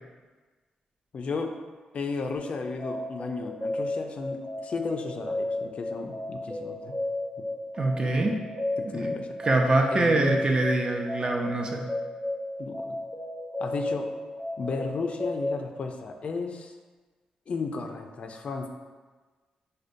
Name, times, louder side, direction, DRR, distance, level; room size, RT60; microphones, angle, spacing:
voice 1, 1.1-1.5 1.9-7.0 7.4-7.5 8.8-9.4 9.9-10.3 12.6-13.0 13.6-14.1 14.6-16.7 17.5-18.7, left 4 dB, 55° left, 4 dB, 0.3 m, -34 dB
sound 1, 2.4-15.6, left 1 dB, 20° right, 0.9 m, -34 dB
voice 2, 7.8-8.3 8.9-9.1 9.4-11.8, right 2 dB, 35° right, 1 dB, 0.5 m, -24 dB
4.9 x 2.2 x 2.5 m, 1.4 s
cardioid pair, 80°, 2 cm